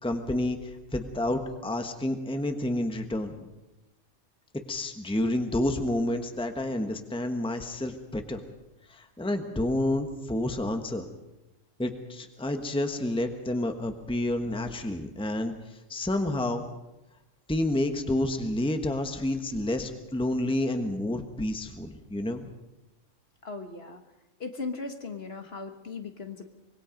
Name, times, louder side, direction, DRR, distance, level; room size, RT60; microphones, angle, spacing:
voice 1, 0.0-3.4 4.7-8.4 8.9-11.1 11.8-16.6 17.5-22.5, left 1 dB, 5° left, 6 dB, 1.2 m, -29 dB
voice 2, 23.4-24.0 24.4-26.5, left 4 dB, 50° left, 6 dB, 1.8 m, -38 dB
24.5 x 21.5 x 5.2 m, 0.95 s
omnidirectional pair, 1.3 m